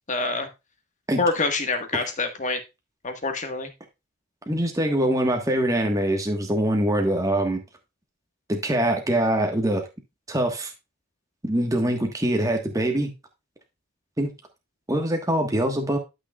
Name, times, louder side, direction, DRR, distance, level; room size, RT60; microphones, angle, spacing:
voice 1, 0.1-0.5 1.2-2.6 3.0-3.7, left 3 dB, 35° left, 6 dB, 1.5 m, -26 dB
voice 2, 4.5-7.6 8.5-9.8 10.3-10.7 11.4-13.1 14.2-14.3 14.9-16.0, right 1 dB, 15° right, 3 dB, 1.4 m, -23 dB
11.5 x 6.5 x 2.4 m, 0.25 s
head